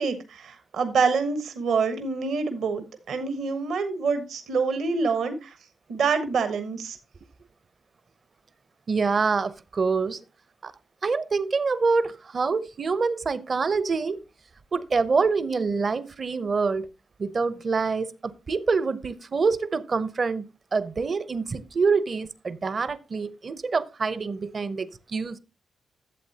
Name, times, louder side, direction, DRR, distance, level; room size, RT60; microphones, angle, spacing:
voice 1, 0.0-5.6 5.9-7.0, right 5 dB, 75° right, 1.1 m, -26 dB
voice 2, 8.9-10.2 10.6-10.7 11.0-14.2 14.7-16.9 17.2-20.5 20.7-25.4, right 4 dB, 50° right, 0.7 m, -26 dB
11.5 x 7.7 x 2.8 m
supercardioid pair, 45°, 0 cm